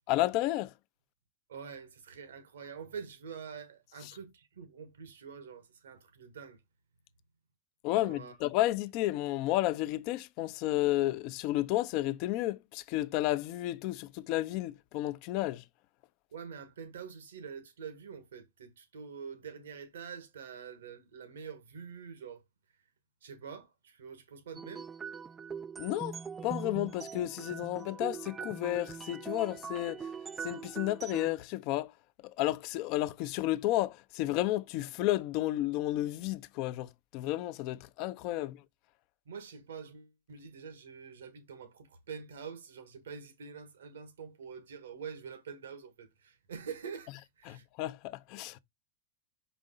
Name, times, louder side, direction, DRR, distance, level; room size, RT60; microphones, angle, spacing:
voice 1, 0.1-0.7 4.0-4.1 7.8-15.6 25.8-26.2 26.4-30.1 30.4-31.9 32.2-38.6 47.5-48.6, left 16 dB, 50° left, 0.6 m, -32 dB
voice 2, 1.5-6.6 8.0-8.4 16.3-22.4 23.2-24.9 38.4-38.5 39.2-47.6, right 6 dB, 85° right, 1.6 m, -46 dB
sound 1, 24.6-31.4, right 6 dB, 20° right, 0.4 m, -42 dB
5.4 x 5.0 x 3.8 m
hypercardioid pair, 115°, 0 cm